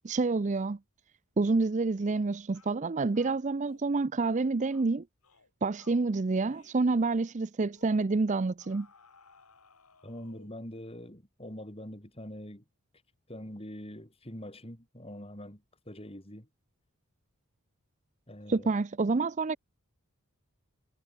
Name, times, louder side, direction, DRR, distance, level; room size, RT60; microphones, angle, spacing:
voice 1, 0.0-0.8 1.4-5.0 5.6-8.9 18.5-19.6, right 3 dB, 35° right, 0.5 m, -28 dB
sound 1, 1.9-2.2 2.5-2.8 3.1-3.9 4.2-4.4 4.7-4.9 5.2-5.5 5.8-6.1 6.5-6.8 7.1-7.3 7.8-8.0 8.6-10.6, left 4 dB, 85° left, 5.2 m, -61 dB
voice 2, 10.0-12.6 13.3-16.5 18.3-18.7, left 1 dB, 25° left, 4.8 m, -44 dB
head